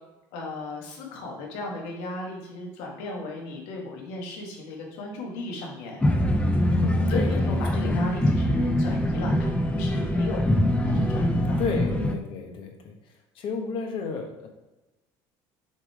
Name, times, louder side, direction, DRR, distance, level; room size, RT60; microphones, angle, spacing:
voice 1, 0.3-6.0 7.1-11.6, left 2 dB, 85° left, -1 dB, 1.8 m, -36 dB
sound 1, 6.0-12.1, left 1 dB, 10° left, 0.8 m, -23 dB
voice 2, 6.6-8.1 11.6-14.5, left 4 dB, 60° left, 3 dB, 1.4 m, -32 dB
7.3 x 3.5 x 4.8 m, 1.1 s
supercardioid pair, 100°, 10 cm